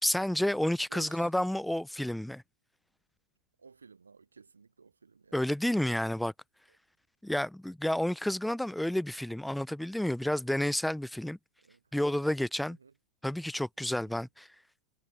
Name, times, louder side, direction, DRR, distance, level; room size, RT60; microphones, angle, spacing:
voice 1, 0.0-2.4 5.3-6.3 7.2-11.4 11.9-12.8 13.2-14.5, left 1 dB, ahead, 1.0 m, -30 dB
voice 2, 0.9-1.2 3.6-5.3 11.7-11.8 12.8-12.9, right 5 dB, 75° right, 0.7 m, -54 dB
figure-of-eight pair, 90°, 0 cm